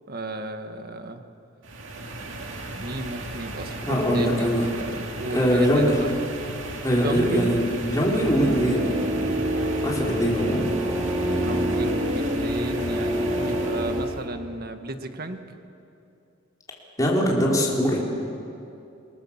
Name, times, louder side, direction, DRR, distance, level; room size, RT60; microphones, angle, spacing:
voice 1, 0.1-1.2 2.8-6.1 6.9-8.1 8.4-8.7 11.2-15.4, right 2 dB, 50° right, 7 dB, 1.5 m, -34 dB
sound 1, 1.6-14.3, right 2 dB, 70° right, 2.3 m, -36 dB
voice 2, 3.9-4.7 5.3-6.0 6.8-8.9 9.8-10.7 17.0-18.0, equal, 20° left, -3 dB, 3.7 m, -22 dB
sound 2, 8.2-14.1, equal, 25° right, 3.1 m, -27 dB
29.5 x 19.0 x 7.2 m, 2.7 s
head